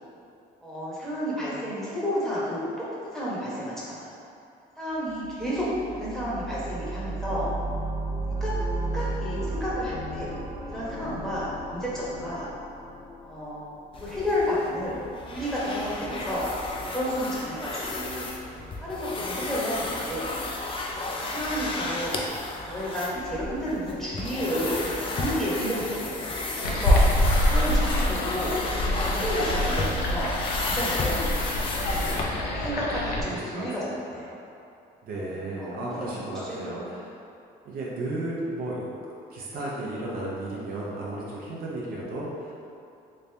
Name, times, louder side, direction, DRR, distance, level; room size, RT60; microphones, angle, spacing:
voice 1, 0.6-4.1 4.8-7.5 8.3-8.5 8.8-10.3 10.6-12.5 13.2-13.6 13.9-16.5 16.8-18.3 18.8-20.4 21.1-22.2 22.7-28.6 29.1-31.7 32.6-34.3 35.3-37.0 39.5-39.7, equal, 5° left, -9 dB, 1.0 m, -31 dB
sound 1, 5.2-14.0, right 2 dB, 65° left, 1.0 m, -34 dB
sound 2, 13.9-32.7, left 2 dB, 30° left, 0.4 m, -33 dB
sound 3, 26.6-33.2, left 1 dB, 85° left, 0.6 m, -25 dB
voice 2, 32.5-33.7 34.1-34.2 35.0-37.1 37.6-38.9 39.3-42.5, right 1 dB, 60° right, -5 dB, 0.8 m, -34 dB
3.3 x 2.7 x 3.3 m, 2.6 s
cardioid pair, 110°, 17 cm